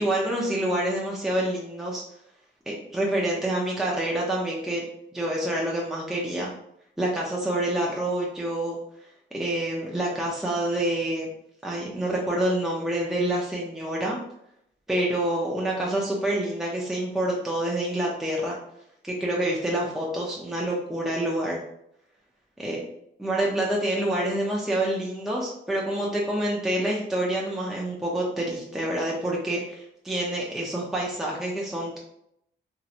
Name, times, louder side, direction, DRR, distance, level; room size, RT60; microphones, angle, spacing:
voice 1, 0.0-2.0 2.7-4.8 5.1-6.5 7.0-8.8 9.3-11.3 11.6-14.2 14.9-18.6 19.0-21.6 22.6-22.8 23.2-32.0, right 1 dB, ahead, -3 dB, 0.6 m, -27 dB
2.9 x 2.8 x 2.5 m, 0.76 s
cardioid pair, 80°, 20 cm